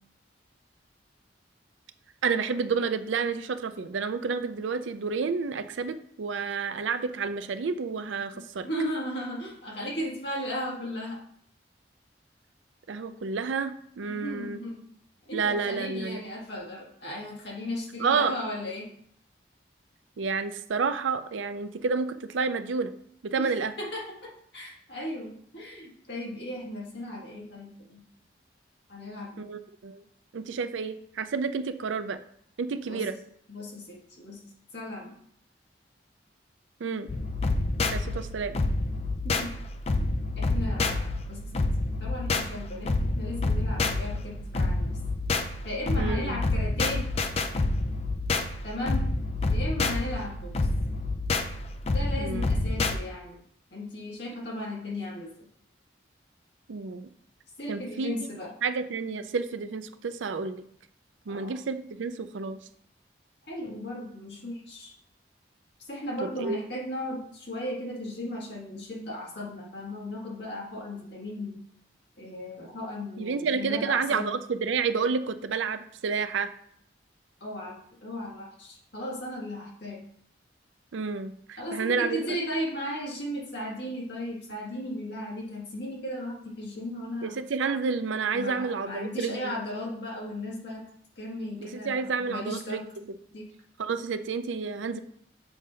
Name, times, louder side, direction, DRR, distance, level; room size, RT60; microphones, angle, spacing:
voice 1, 2.2-8.7 12.9-14.6 15.3-16.2 18.0-18.3 20.2-22.9 23.2-23.7 29.4-30.0 30.3-32.2 32.6-33.2 36.8-37.1 37.9-38.6 46.0-46.4 52.2-52.5 56.7-57.1 57.7-58.2 58.6-60.6 61.3-62.6 66.2-66.6 73.2-76.5 80.9-82.2 87.2-89.5 91.9-92.8 93.8-95.0, right 5 dB, 90° right, 11 dB, 0.5 m, -30 dB
voice 2, 8.3-11.2 14.1-14.9 15.3-18.9 23.4-28.0 28.9-29.6 32.9-33.0 33.5-35.2 39.2-39.5 39.9-41.6 42.0-44.9 45.6-47.1 48.6-49.1 49.5-50.5 51.8-53.4 53.7-55.3 57.6-58.5 61.3-61.6 63.5-64.9 65.9-71.6 72.2-74.3 77.4-77.7 78.0-80.0 81.6-87.4 88.3-90.8 91.2-92.8 93.3-93.5, left 1 dB, 65° left, -4 dB, 1.8 m, -36 dB
sound 1, 37.1-53.0, left 2 dB, 35° left, 0.4 m, -28 dB
7.1 x 2.7 x 5.0 m, 0.66 s
head